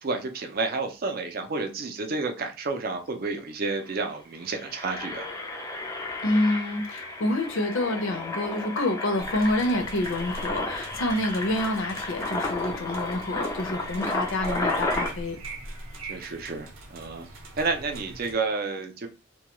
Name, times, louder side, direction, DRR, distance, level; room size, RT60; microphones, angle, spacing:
voice 1, 0.0-5.3 14.5-14.6 16.0-17.3 17.6-19.1, right 3 dB, 45° right, 0.4 m, -30 dB
Engine, 3.4-3.5 3.7-3.9 4.4-15.1, left 2 dB, 15° left, 0.3 m, -33 dB
voice 2, 6.2-15.4, left 1 dB, 65° left, 0.6 m, -27 dB
sound 1, 9.2-18.3, right 2 dB, 80° right, 0.7 m, -42 dB
2.2 x 2.2 x 2.9 m
head